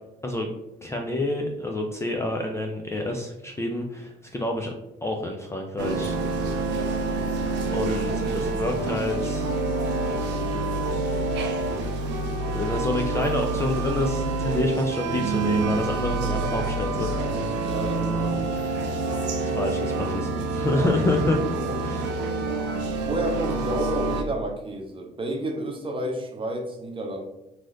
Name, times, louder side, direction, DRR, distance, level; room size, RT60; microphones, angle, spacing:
voice 1, 0.2-0.5 0.8-4.7 5.0-6.2 6.6-6.7 7.7-9.5 10.5-10.8 12.5-17.1 19.4-21.4 21.8-22.1, left 2 dB, 15° left, 1 dB, 0.4 m, -28 dB
sound 1, 5.8-24.2, right 3 dB, 60° right, 0.5 m, -27 dB
voice 2, 17.6-18.6 20.7-21.0 21.5-21.8 22.9-27.2, right 1 dB, 25° right, 2 dB, 0.8 m, -31 dB
3.0 x 2.6 x 2.5 m, 0.92 s
hypercardioid pair, 50°, 21 cm